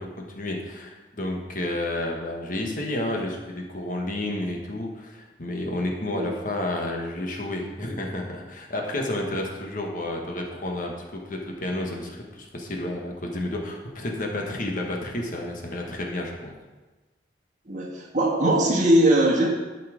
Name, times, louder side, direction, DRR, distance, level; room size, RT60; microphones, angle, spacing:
voice 1, 0.0-16.5, left 1 dB, 45° left, 0 dB, 1.4 m, -31 dB
voice 2, 17.7-19.5, right 1 dB, 40° right, -1 dB, 1.8 m, -20 dB
11.5 x 5.8 x 5.0 m, 1.2 s
head